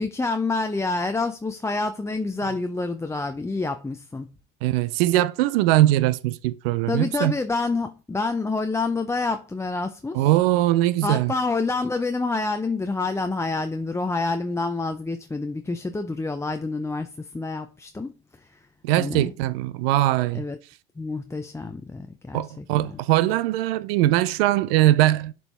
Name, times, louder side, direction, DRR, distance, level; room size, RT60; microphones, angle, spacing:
voice 1, 0.0-4.3 6.9-10.3 11.0-18.6 19.0-19.3 20.3-20.6 21.0-23.0, left 3 dB, 10° left, 0.5 m, -28 dB
voice 2, 4.6-7.3 10.1-11.3 18.8-20.4 22.3-25.3, right 15 dB, 75° right, 0.6 m, -21 dB
6.8 x 4.6 x 3.3 m
hypercardioid pair, 75°, 30 cm